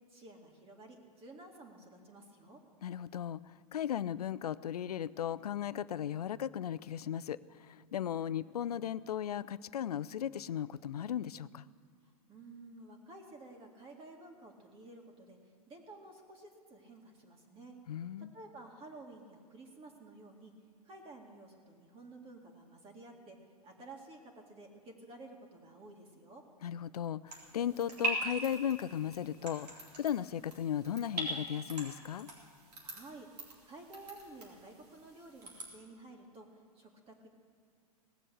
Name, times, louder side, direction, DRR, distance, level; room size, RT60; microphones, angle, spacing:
voice 1, 0.1-2.6 12.3-15.4 15.7-17.7 18.2-20.5 20.8-23.4 23.6-26.4 32.8-33.3 33.6-36.5 36.7-37.3, right 2 dB, 30° right, 1 dB, 2.3 m, -52 dB
voice 2, 2.8-3.4 3.7-11.7 17.9-18.3 26.6-32.3, left 9 dB, 80° left, 17 dB, 0.4 m, -36 dB
sound 1, 27.3-35.7, right 1 dB, 85° right, 3.6 m, -42 dB
18.0 x 7.6 x 7.9 m, 2.2 s
hypercardioid pair, 100°, 19 cm